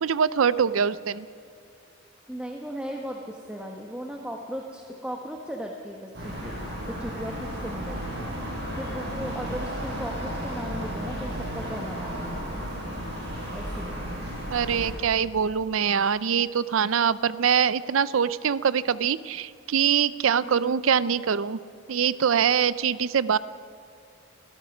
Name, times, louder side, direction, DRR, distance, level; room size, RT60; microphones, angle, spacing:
voice 1, 0.0-1.3 14.5-21.6 21.9-23.4, right 7 dB, 80° right, 17 dB, 0.5 m, -23 dB
voice 2, 2.3-6.5 6.9-8.3 8.7-12.6 13.5-14.1 20.5-20.8, equal, 5° right, 1 dB, 1.3 m, -37 dB
sound 1, 6.1-14.9, equal, 55° right, 6.6 m, -33 dB
29.0 x 17.5 x 6.1 m, 2.3 s
head